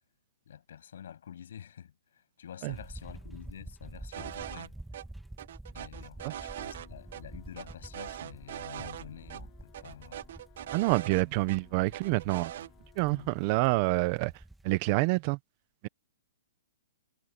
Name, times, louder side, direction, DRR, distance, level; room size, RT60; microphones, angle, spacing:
voice 1, 0.5-4.8 5.7-10.2 13.0-13.4, left 9 dB, 65° left, 7.9 m, -48 dB
sound 1, 2.7-14.7, right 1 dB, ahead, 1.6 m, -49 dB
sound 2, 4.1-4.7 4.9-5.0 5.4-6.9 7.1-7.2 7.6-9.0 9.3-9.4 9.7-11.6 11.9-12.7, right 11 dB, 50° right, 1.1 m, -41 dB
sound 3, 6.0-14.0, left 20 dB, 25° left, 6.8 m, -61 dB
voice 2, 10.7-12.5 13.0-14.3 14.6-15.4, right 22 dB, 30° right, 0.7 m, -27 dB
hypercardioid pair, 170°, 0 cm